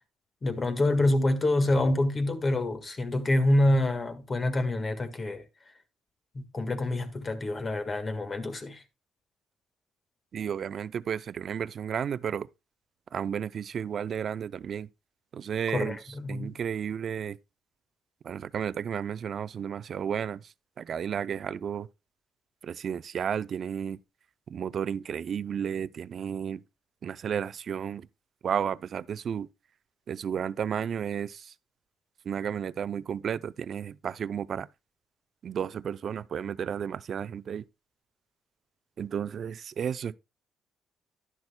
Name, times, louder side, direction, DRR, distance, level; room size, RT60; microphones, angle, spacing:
voice 1, 0.4-5.4 6.3-8.8 15.7-16.6, left 1 dB, 35° left, 1.6 m, -26 dB
voice 2, 10.3-12.5 13.1-14.9 15.3-17.4 18.2-21.9 22.6-24.0 24.5-26.6 27.0-28.1 28.4-29.5 30.1-31.5 32.2-34.7 35.4-37.7 39.0-40.2, right 8 dB, 55° right, 0.4 m, -33 dB
11.0 x 10.5 x 2.2 m
cardioid pair, 90°, 0 cm